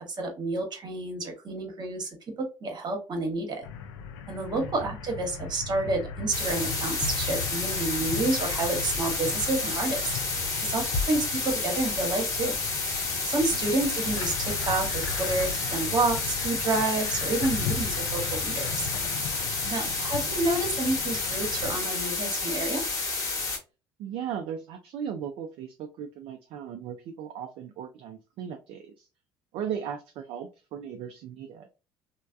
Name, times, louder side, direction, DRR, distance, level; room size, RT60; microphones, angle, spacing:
voice 1, 0.0-2.1 2.4-3.6 4.3-10.0 10.6-12.5 13.3-18.9 19.7-22.8, right 2 dB, 40° right, 3 dB, 1.1 m, -29 dB
sound 1, 3.6-21.7, left 4 dB, 70° left, 0.4 m, -37 dB
voice 2, 4.5-4.8 19.6-19.9 24.0-29.1 29.5-31.7, right 8 dB, 55° right, 6 dB, 0.4 m, -37 dB
sound 2, 6.3-23.6, left 3 dB, 30° left, 1.1 m, -30 dB
3.2 x 2.1 x 2.5 m, 0.31 s
hypercardioid pair, 60°, 11 cm